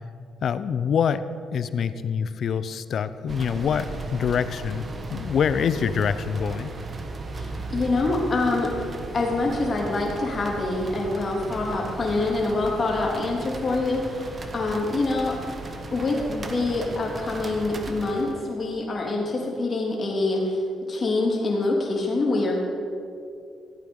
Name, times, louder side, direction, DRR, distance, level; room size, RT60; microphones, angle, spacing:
voice 1, 0.4-1.2 1.5-4.8 5.1-6.7, left 7 dB, 60° left, 14 dB, 0.6 m, -25 dB
sound 1, 3.3-18.6, right 2 dB, 35° right, 1.3 m, -36 dB
voice 2, 7.4-8.7 9.1-15.4 15.9-20.6 20.9-22.6, left 2 dB, 40° left, -2 dB, 3.2 m, -25 dB
15.0 x 8.5 x 5.4 m, 2.5 s
cardioid pair, 90°, 0 cm